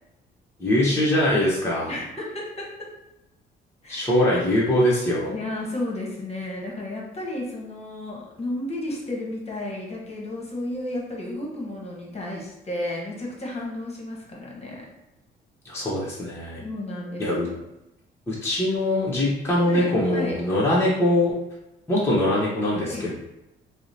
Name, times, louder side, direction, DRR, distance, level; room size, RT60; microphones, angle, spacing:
voice 1, 0.6-1.9 3.9-5.4 15.6-16.6 17.2-17.5 18.3-21.3 21.9-23.1, left 1 dB, 15° left, -6 dB, 0.8 m, -22 dB
voice 2, 1.9-2.9 3.8-4.1 5.3-14.9 16.6-17.6 19.6-20.4 22.8-23.1, left 1 dB, 30° left, -2 dB, 1.1 m, -33 dB
4.6 x 2.1 x 2.7 m, 0.91 s
cardioid pair, 90°, 20 cm